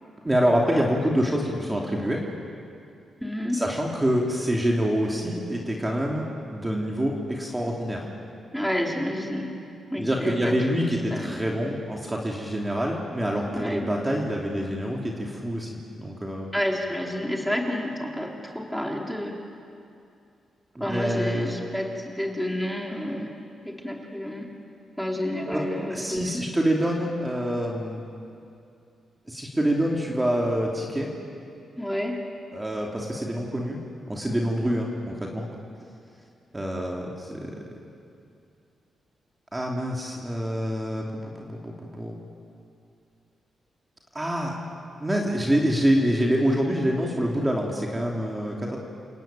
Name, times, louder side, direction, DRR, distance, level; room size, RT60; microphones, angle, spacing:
voice 1, 0.2-2.2 3.5-8.1 10.0-16.5 20.7-21.5 25.5-25.6 25.9-28.0 29.3-31.1 32.5-33.8 34.1-35.5 36.5-37.5 39.5-42.1 44.1-44.6 45.0-48.8, equal, 15° right, -1 dB, 3.0 m, -26 dB
voice 2, 3.2-3.6 8.5-9.5 9.9-10.5 11.1-11.3 13.5-13.9 16.5-19.4 20.8-23.3 23.6-24.5 25.0-26.5 31.8-32.2, left 1 dB, ahead, 0 dB, 3.4 m, -29 dB
29.0 x 17.5 x 9.2 m, 2.5 s
cardioid pair, 95°, 0 cm